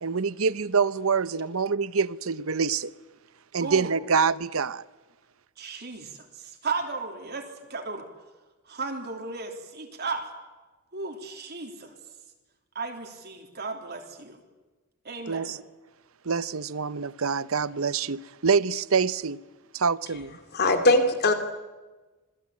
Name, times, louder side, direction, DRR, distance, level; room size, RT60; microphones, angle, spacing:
voice 1, 0.0-2.9 3.5-4.8 15.3-15.6 16.2-19.4 19.7-20.4, right 5 dB, 65° right, 0.8 m, -26 dB
voice 2, 3.6-3.9 5.6-8.1 8.6-10.3 10.9-11.9 12.7-14.4 15.0-15.5, right 4 dB, 45° right, 3.3 m, -35 dB
voice 3, 20.5-21.3, left 2 dB, 45° left, 2.8 m, -20 dB
27.0 x 20.0 x 8.6 m
head